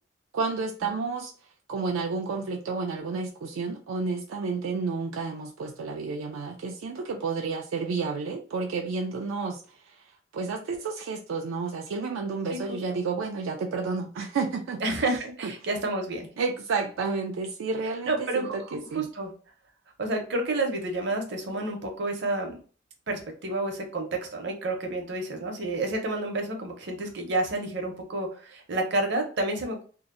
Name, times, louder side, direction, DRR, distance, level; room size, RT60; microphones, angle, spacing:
voice 1, 0.3-1.3 1.7-9.6 10.3-14.8 15.4-15.5 16.4-19.1, right 4 dB, 85° right, 2 dB, 0.3 m, -31 dB
voice 2, 12.5-13.1 14.8-16.3 18.0-19.3 20.0-22.6 23.1-29.8, right 2 dB, 60° right, 3 dB, 0.7 m, -30 dB
2.7 x 2.0 x 2.4 m, 0.39 s
head